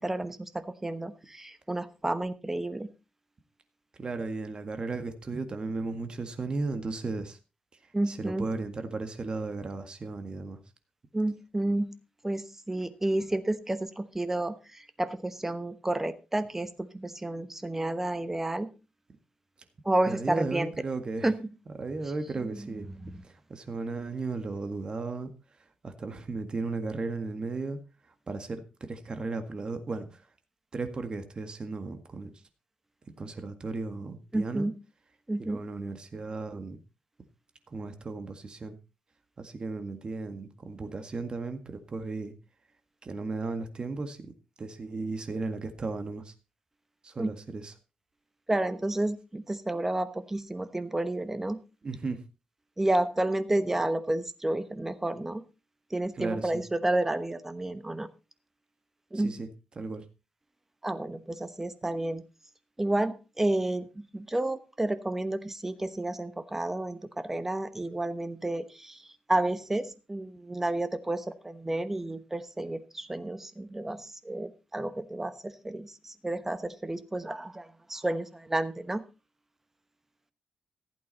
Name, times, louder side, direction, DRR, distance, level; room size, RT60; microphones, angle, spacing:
voice 1, 0.0-2.9 7.9-8.4 11.1-11.9 12.2-18.7 19.8-20.7 21.2-21.5 23.0-23.2 34.3-34.7 35.3-35.6 47.2-47.3 48.5-51.6 52.8-55.4 55.9-58.1 59.1-59.3 60.8-62.2 62.8-79.1, right 1 dB, 15° right, 12 dB, 1.1 m, -31 dB
voice 2, 4.0-7.4 8.1-10.6 20.1-21.3 21.8-22.9 23.2-25.3 25.8-27.8 28.3-30.3 30.7-32.3 33.2-34.7 35.4-36.8 37.7-38.8 39.4-42.3 43.0-46.3 47.0-47.7 51.8-52.2 56.2-56.6 59.1-59.5 59.8-60.0, right 3 dB, 35° right, 8 dB, 1.8 m, -35 dB
15.0 x 8.5 x 4.2 m, 0.31 s
cardioid pair, 120°, 3 cm